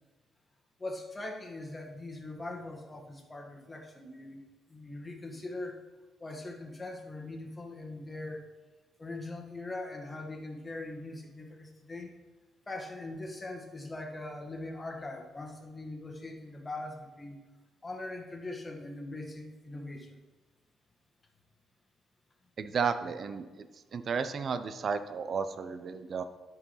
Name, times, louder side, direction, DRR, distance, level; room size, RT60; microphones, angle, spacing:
voice 1, 0.8-4.4 4.7-5.8 6.2-8.5 9.0-12.1 12.7-17.4 17.8-20.2, left 2 dB, 25° left, 2 dB, 1.6 m, -41 dB
voice 2, 22.6-23.4 23.9-26.2, right 6 dB, 50° right, 11 dB, 0.7 m, -33 dB
11.0 x 4.8 x 5.8 m, 1.2 s
cardioid pair, 90°, 0 cm